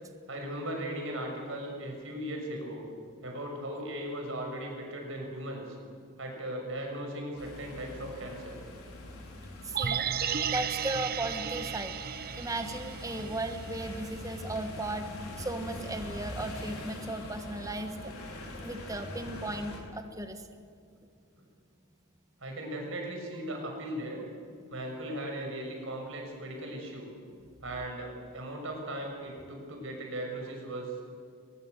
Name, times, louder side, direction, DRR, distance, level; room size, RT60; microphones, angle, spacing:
voice 1, 0.3-2.8 3.2-5.8 6.2-8.5 22.4-24.2 24.7-27.1 27.6-30.9, right 1 dB, 65° right, 1 dB, 6.4 m, -38 dB
sound 1, 7.4-19.8, left 1 dB, 85° left, 4.6 m, -43 dB
voice 2, 9.6-10.1 10.5-11.9 12.4-15.1 15.4-18.1 18.6-20.5, right 2 dB, 15° right, 7 dB, 1.5 m, -36 dB
sound 2, 9.7-13.9 14.3-14.4, right 8 dB, 45° right, 0.7 m, -34 dB
22.5 x 20.5 x 8.2 m, 2.3 s
head